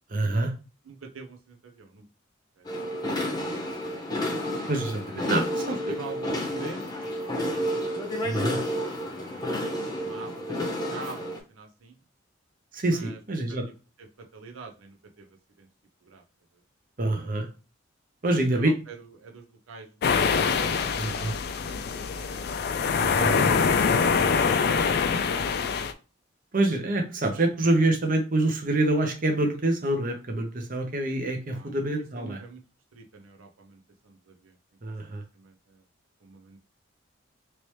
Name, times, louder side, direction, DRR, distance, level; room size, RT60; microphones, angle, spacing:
voice 1, 0.1-0.5 4.7-5.8 8.2-8.6 12.7-13.6 17.0-17.5 18.2-18.7 21.0-21.3 23.2-23.8 26.5-32.4 34.8-35.2, right 2 dB, 45° right, 4 dB, 0.7 m, -26 dB
voice 2, 0.8-2.1 2.6-3.7 5.7-7.9 9.0-10.6 10.9-12.0 12.9-13.2 13.5-13.6 14.0-15.7 16.0-16.2 18.2-20.4 20.9-23.1 31.5-31.7 32.1-32.6 32.9-34.6 35.3-35.8 36.2-36.6, right 4 dB, 90° right, 3 dB, 0.6 m, -46 dB
sound 1, 2.6-11.4, equal, 20° left, 0.8 m, -31 dB
sound 2, 20.0-25.9, left 5 dB, 50° left, 0.3 m, -24 dB
3.0 x 3.0 x 3.1 m, 0.32 s
head